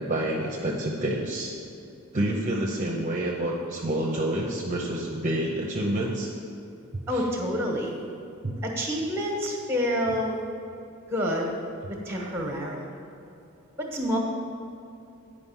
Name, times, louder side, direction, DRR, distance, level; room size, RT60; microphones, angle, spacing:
voice 1, 0.0-1.5 2.1-6.3 8.4-8.5 12.2-12.3, right 1 dB, 35° right, -1 dB, 0.7 m, -28 dB
voice 2, 7.1-8.0 8.6-10.4 11.1-11.5 11.9-12.8 13.8-14.2, equal, 10° right, 0 dB, 1.2 m, -28 dB
9.6 x 5.1 x 5.5 m, 2.6 s
head